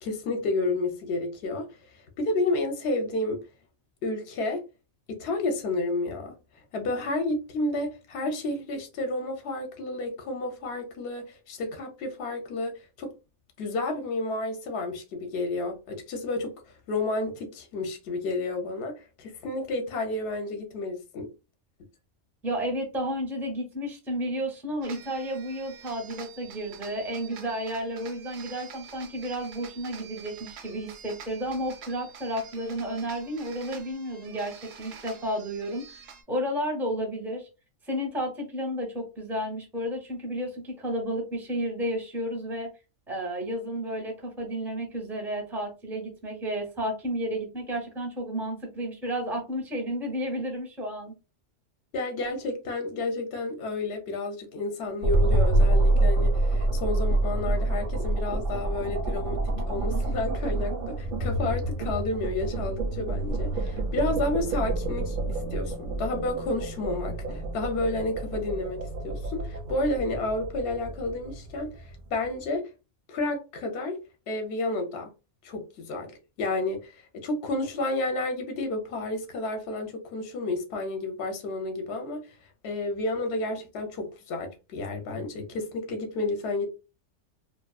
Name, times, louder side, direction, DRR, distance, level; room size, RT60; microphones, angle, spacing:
voice 1, 0.0-3.5 4.0-4.6 5.1-6.3 6.7-12.7 13.0-13.1 13.6-21.3 51.9-72.7 73.1-74.0 74.3-75.1 75.4-82.3 82.6-86.7, left 2 dB, 65° left, 0.8 m, -31 dB
voice 2, 22.4-36.0 36.3-37.5 37.9-42.7 43.1-51.1, equal, ahead, 0.5 m, -32 dB
sound 1, 24.8-36.2, right 7 dB, 85° right, 0.9 m, -47 dB
sound 2, 55.0-72.3, right 2 dB, 60° right, 0.6 m, -27 dB
2.5 x 2.3 x 2.2 m
omnidirectional pair, 1.3 m